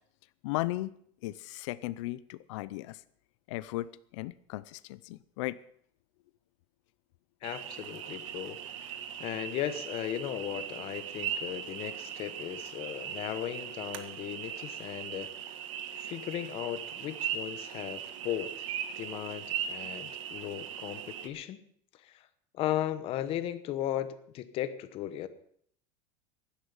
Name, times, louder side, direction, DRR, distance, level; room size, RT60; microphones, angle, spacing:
voice 1, 0.4-0.9 1.2-3.0 3.5-5.6, left 18 dB, 70° left, 16 dB, 0.6 m, -36 dB
voice 2, 7.4-8.8 9.2-15.6 16.0-18.7 19.0-21.6 22.0-22.2 22.5-25.3, left 12 dB, 35° left, 13 dB, 1.0 m, -36 dB
sound 1, 7.4-21.3, right 9 dB, 85° right, 1.7 m, -39 dB
16.0 x 11.5 x 5.6 m, 0.65 s
supercardioid pair, 165°, 16 cm